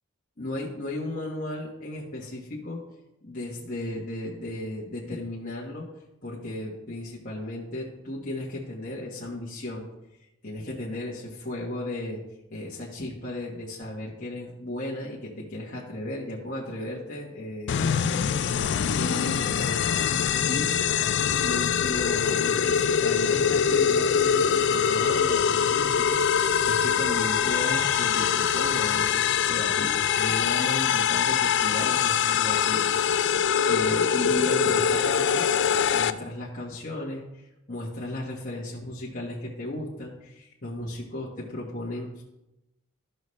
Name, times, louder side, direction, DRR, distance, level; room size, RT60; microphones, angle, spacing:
voice 1, 0.4-2.8 3.2-5.9 6.2-9.9 10.4-12.2 12.5-18.5 18.8-32.9 33.1-33.3 33.7-35.5 35.9-42.2, left 1 dB, 40° left, -5 dB, 1.4 m, -35 dB
sound 1, 17.7-36.1, left 7 dB, 55° left, 0.4 m, -23 dB
14.0 x 5.5 x 3.2 m, 0.93 s
head